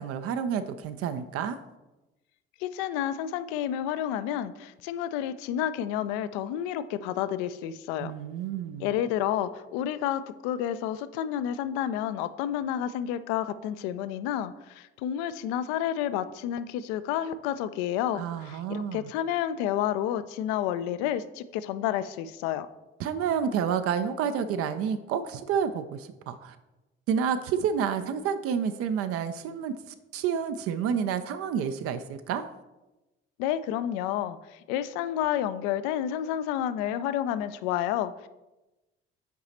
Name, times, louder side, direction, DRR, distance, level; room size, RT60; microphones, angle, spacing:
voice 1, 0.0-1.6 8.0-8.9 18.2-19.1 23.0-26.6 27.1-32.4, right 7 dB, 45° right, 10 dB, 0.5 m, -29 dB
voice 2, 2.6-8.1 8.8-22.7 33.4-38.3, left 10 dB, 60° left, 14 dB, 0.5 m, -30 dB
5.9 x 4.8 x 4.2 m, 1.0 s
figure-of-eight pair, 50°, 32 cm